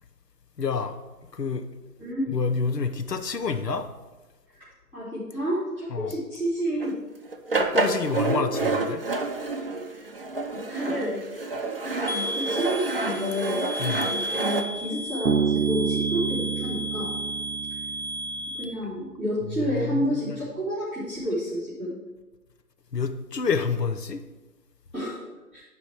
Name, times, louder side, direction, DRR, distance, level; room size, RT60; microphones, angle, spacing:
voice 1, 0.6-1.0 1.3-1.6 2.3-3.9 5.9-6.1 7.6-9.0 13.8-14.1 19.6-20.4 22.9-24.2, left 5 dB, 80° left, 8 dB, 0.9 m, -28 dB
voice 2, 4.9-6.9 10.0-10.1 10.5-11.2 11.8-13.7 14.3-17.1 18.6-22.0 24.9-25.2 25.5-25.6, equal, 10° left, -14 dB, 2.7 m, -30 dB
sound 1, 6.8-6.9 7.3-14.6, right 3 dB, 35° right, 0.6 m, -28 dB
sound 2, 12.1-18.6, equal, 40° left, 0.5 m, -33 dB
Bass guitar, 15.3-18.7, right 7 dB, 75° right, 0.7 m, -28 dB
9.6 x 5.2 x 5.0 m, 1.1 s
figure-of-eight pair, 155°, 48 cm